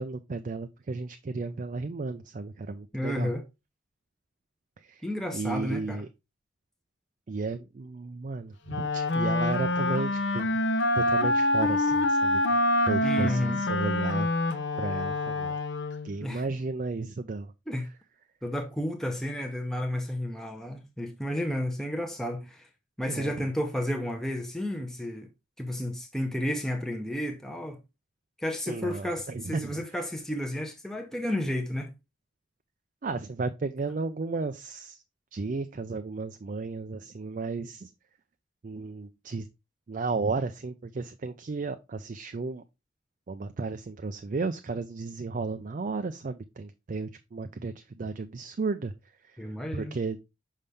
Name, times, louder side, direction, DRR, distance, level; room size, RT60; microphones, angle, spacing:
voice 1, 0.0-3.3 4.8-5.0 5.3-6.1 7.3-10.6 11.0-12.6 12.9-14.3 14.8-15.6 16.0-17.5 23.0-23.4 28.7-29.8 33.0-35.0 35.3-37.9 38.6-39.5 39.9-42.6 43.3-48.9 49.3-49.4 49.7-50.2, right 3 dB, 40° right, 0.4 m, -34 dB
voice 2, 2.9-3.4 5.0-6.0 13.0-13.6 16.2-16.4 17.7-17.9 18.4-22.7 23.0-25.3 25.6-27.8 28.4-31.9 49.4-49.9, left 1 dB, ahead, 0.7 m, -32 dB
Wind instrument woodwind instrument, 8.7-16.2, left 1 dB, 65° left, 0.7 m, -26 dB
5.5 x 5.4 x 3.3 m
head